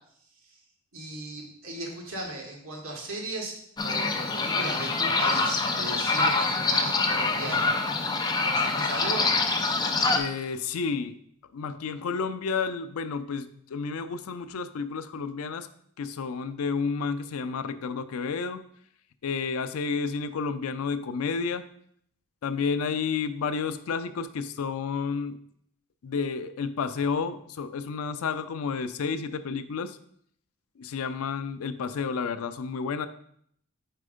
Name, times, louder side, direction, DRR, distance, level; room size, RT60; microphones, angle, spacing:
voice 1, 0.9-7.7 8.4-9.3, right 2 dB, 70° right, -1 dB, 1.5 m, -36 dB
sound 1, 3.8-10.2, left 3 dB, 20° left, 0.5 m, -25 dB
voice 2, 10.1-11.2 11.5-15.7 16.0-18.6 19.2-21.6 22.4-25.4 26.0-30.0 30.8-33.1, left 5 dB, 80° left, 11 dB, 0.4 m, -31 dB
4.5 x 4.2 x 5.0 m, 0.68 s
head